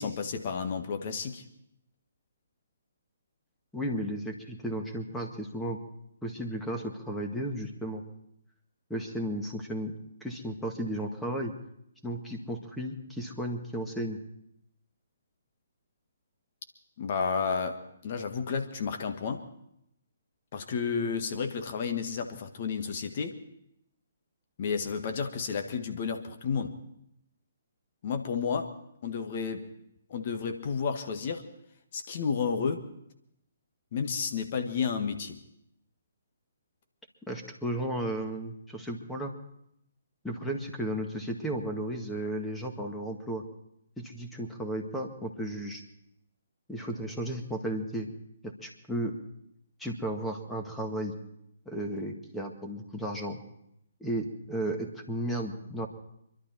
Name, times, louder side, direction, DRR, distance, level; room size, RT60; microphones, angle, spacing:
voice 1, 0.0-1.4 17.0-17.8 18.0-19.4 20.5-23.4 24.6-26.7 28.0-28.7 29.0-29.7 30.1-31.4 31.9-32.8 33.9-35.4, left 6 dB, 45° left, 5 dB, 1.7 m, -31 dB
voice 2, 3.7-5.8 6.2-8.0 8.9-9.9 10.2-11.5 12.0-14.2 37.3-39.3 40.2-43.4 44.0-45.8 46.7-48.1 48.6-49.1 49.8-51.1 51.7-53.4 54.0-55.9, right 1 dB, 5° left, 2 dB, 1.8 m, -34 dB
26.5 x 12.0 x 4.5 m, 0.78 s
figure-of-eight pair, 130°, 0 cm